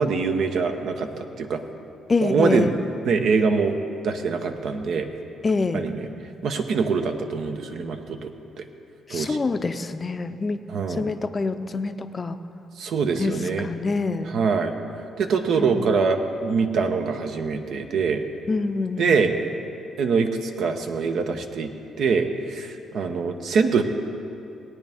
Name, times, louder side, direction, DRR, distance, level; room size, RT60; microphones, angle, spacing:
voice 1, 0.0-1.6 2.2-2.7 3.0-3.8 4.0-5.1 5.7-6.0 6.4-8.3 8.6-8.7 9.1-9.4 10.7-11.1 12.8-13.7 14.3-14.7 15.2-18.2 19.0-19.3 20.0-21.7 22.0-23.8, right 5 dB, 70° right, 6 dB, 0.8 m, -24 dB
voice 2, 2.1-2.7 5.4-5.9 9.1-10.7 11.0-12.4 13.2-14.4 15.6-16.0 18.5-19.1, left 3 dB, 30° left, 10 dB, 0.5 m, -26 dB
18.0 x 9.2 x 3.5 m, 2.8 s
cardioid pair, 90°, 0 cm